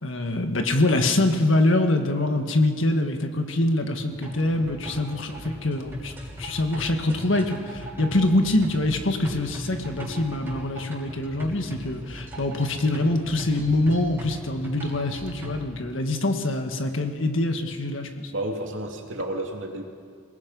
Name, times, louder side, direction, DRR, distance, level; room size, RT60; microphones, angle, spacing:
voice 1, 0.0-6.1 6.4-18.3, left 2 dB, 65° left, 5 dB, 1.7 m, -24 dB
sound 1, 4.1-15.7, equal, 10° right, 6.1 m, -38 dB
voice 2, 18.3-19.8, right 1 dB, 65° right, 1 dB, 2.8 m, -31 dB
27.5 x 19.0 x 5.5 m, 2.1 s
head